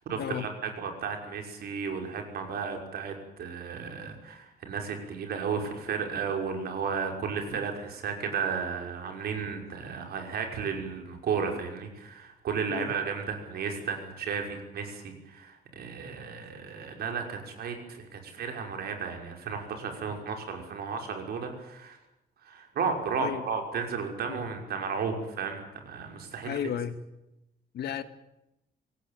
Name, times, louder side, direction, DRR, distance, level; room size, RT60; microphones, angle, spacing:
voice 1, 0.1-22.0 22.4-26.6, right 6 dB, 70° right, 3 dB, 5.8 m, -34 dB
voice 2, 26.5-27.0 27.7-28.0, left 9 dB, 75° left, 10 dB, 1.9 m, -33 dB
25.0 x 18.5 x 8.8 m, 0.90 s
wide cardioid pair, 180°, 17 cm